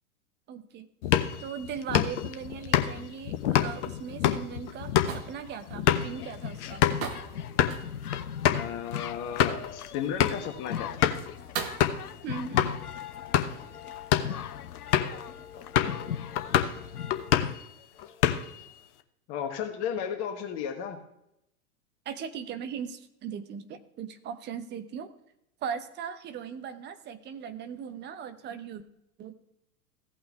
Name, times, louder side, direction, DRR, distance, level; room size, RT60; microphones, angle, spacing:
voice 1, 0.5-0.9 1.4-6.8 12.2-12.8 22.0-25.1 25.6-28.8 29.2-29.3, right 7 dB, 25° right, 9 dB, 0.9 m, -38 dB
sound 1, 1.0-7.1 7.4-7.8 8.1-8.2 8.4-8.7 9.1-9.7 10.2-10.5 11.0-11.3 11.8-12.1 12.6-12.7 13.2-13.6 14.0-14.4 14.9-15.2 15.8-16.0 16.4-16.8 17.1-17.6 18.0-18.6, left 10 dB, 50° left, 1.0 m, -26 dB
sound 2, 3.1-11.9, right 6 dB, 45° right, 1.3 m, -43 dB
sound 3, 5.9-17.5, left 9 dB, 85° left, 0.5 m, -39 dB
voice 2, 8.5-10.9 14.9-15.2 15.5-16.1 19.3-21.0, left 8 dB, 35° left, 4 dB, 1.3 m, -34 dB
16.0 x 5.8 x 3.4 m, 0.81 s
figure-of-eight pair, 95°, 44 cm